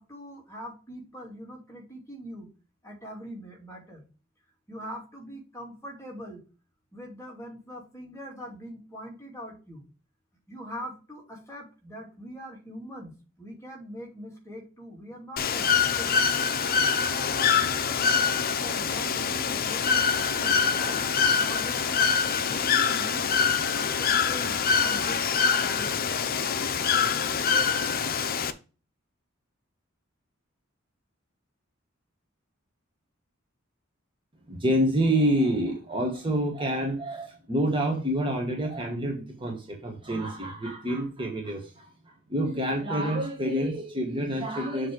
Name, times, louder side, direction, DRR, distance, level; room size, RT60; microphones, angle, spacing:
voice 1, 0.0-2.5 2.8-4.0 4.7-6.4 6.9-9.8 10.5-16.1 17.0-21.0 21.3-22.1 22.4-23.4 23.7-25.2 25.5-25.9 26.3-26.4, equal, 15° left, 2.5 m, -42 dB
Bird / Water, 15.4-28.5, left 6 dB, 45° left, 0.6 m, -25 dB
voice 2, 34.5-44.9, right 1 dB, 25° right, 1.3 m, -27 dB
7.1 x 3.3 x 6.2 m
head